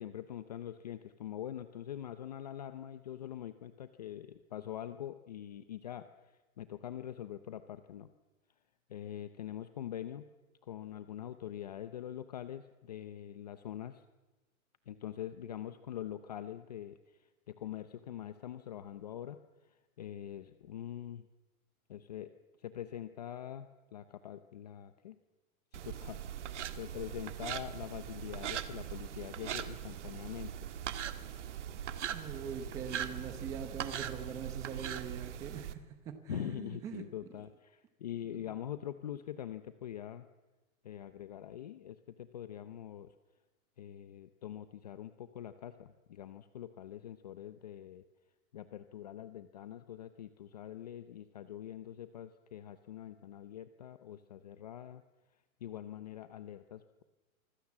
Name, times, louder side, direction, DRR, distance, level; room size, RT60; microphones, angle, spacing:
voice 1, 0.0-8.1 8.9-10.3 10.6-14.0 14.9-21.3 21.9-22.3 22.6-25.2 25.7-30.5 36.3-40.3 40.8-43.1 43.8-48.0 48.5-55.0 55.6-57.0, left 11 dB, 30° left, 11 dB, 0.7 m, -44 dB
sound 1, 25.7-35.7, right 9 dB, 55° right, 1.8 m, -41 dB
voice 2, 32.1-37.0, right 7 dB, 10° right, 8 dB, 0.9 m, -43 dB
25.0 x 25.0 x 7.4 m, 1.2 s
hypercardioid pair, 180°, 42 cm